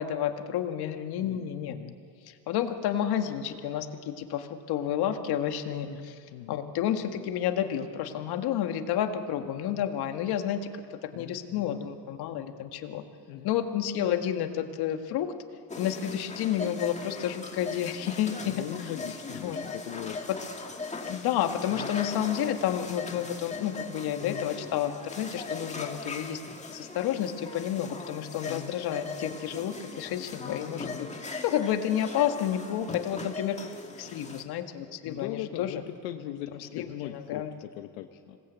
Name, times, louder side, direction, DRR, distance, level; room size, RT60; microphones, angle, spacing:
voice 1, 0.0-1.8 2.3-6.1 6.5-10.7 11.2-13.0 13.4-15.3 15.8-18.6 19.4-19.6 20.3-20.4 21.1-26.4 26.7-31.1 31.4-33.6 34.0-35.8 36.7-37.5, left 10 dB, 60° left, 6 dB, 1.9 m, -30 dB
voice 2, 1.2-2.0 5.8-6.6 11.1-11.7 13.3-13.5 18.4-20.2 21.7-21.9 24.2-24.5 28.5-28.8 30.4-31.1 35.0-38.4, left 13 dB, 90° left, 6 dB, 1.1 m, -40 dB
sound 1, 15.7-34.4, left 3 dB, 15° left, 1.9 m, -39 dB
26.5 x 19.5 x 8.2 m, 2.3 s
cardioid pair, 115°, 42 cm